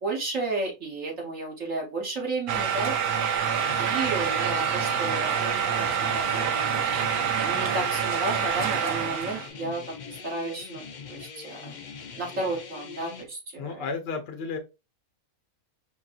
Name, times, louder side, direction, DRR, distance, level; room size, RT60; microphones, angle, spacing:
voice 1, 0.0-3.3 3.8-5.4 5.8-6.6 7.3-9.8 10.1-10.8 11.1-11.8 12.2-13.9, right 2 dB, 60° right, 1.3 m, -32 dB
sound 1, 2.5-9.5, right 7 dB, 90° right, 1.1 m, -26 dB
sound 2, 3.5-13.2, left 6 dB, 75° left, 0.4 m, -42 dB
voice 2, 7.5-7.9 13.6-14.6, left 5 dB, 50° left, 0.9 m, -34 dB
5.2 x 2.6 x 2.4 m
omnidirectional pair, 1.5 m